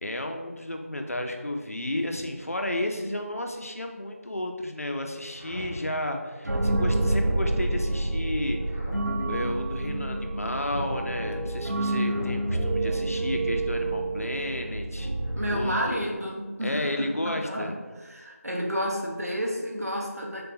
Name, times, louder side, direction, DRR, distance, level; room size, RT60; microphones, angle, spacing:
voice 1, 0.0-8.6 9.2-15.1 15.5-16.1 16.6-17.7, left 1 dB, 65° left, 4 dB, 0.6 m, -32 dB
sound 1, 5.3-6.2 8.6-9.5 11.9-12.8 15.3-16.0, equal, 30° left, 1.1 m, -41 dB
sound 2, 6.4-16.1, right 2 dB, 90° right, 0.5 m, -28 dB
voice 2, 15.3-16.8 17.2-17.7 18.1-20.4, equal, 70° right, -1 dB, 1.0 m, -30 dB
3.7 x 3.5 x 2.8 m, 1.3 s
figure-of-eight pair, 175°, 8 cm